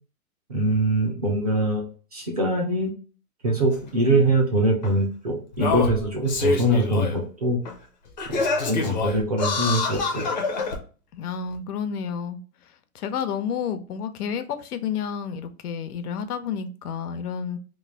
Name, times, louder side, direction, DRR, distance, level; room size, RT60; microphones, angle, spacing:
voice 1, 0.5-1.9 2.1-2.9 3.4-7.6 8.3-8.4 8.7-10.3, right 1 dB, 30° right, 0.4 m, -23 dB
Singing, 3.7-3.8 4.8-4.9 5.5-7.2 7.6-7.7 8.2-10.8 11.5-11.6, left 4 dB, 35° left, 0.4 m, -26 dB
voice 2, 11.1-12.4 12.9-17.6, left 7 dB, 85° left, 0.7 m, -30 dB
3.1 x 2.3 x 3.3 m
hypercardioid pair, 170°, 45 cm